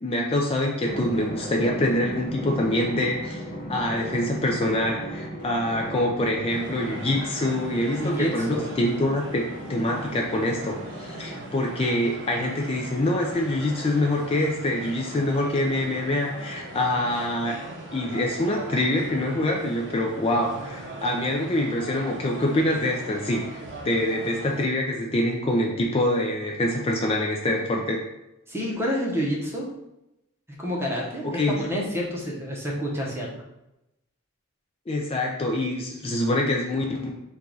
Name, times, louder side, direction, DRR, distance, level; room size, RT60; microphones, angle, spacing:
voice 1, 0.0-3.4 3.7-9.4 9.7-17.6 17.9-28.0 31.2-31.7 34.9-37.1, left 1 dB, 25° left, 0 dB, 0.4 m, -25 dB
Drum, 0.8-11.8, equal, 45° left, 0.9 m, -37 dB
sound 1, 6.5-24.7, right 1 dB, 60° right, 0.7 m, -39 dB
voice 2, 8.0-8.7 28.5-29.7 30.6-33.4, equal, 10° right, -2 dB, 0.8 m, -28 dB
4.6 x 2.3 x 3.9 m, 0.91 s
head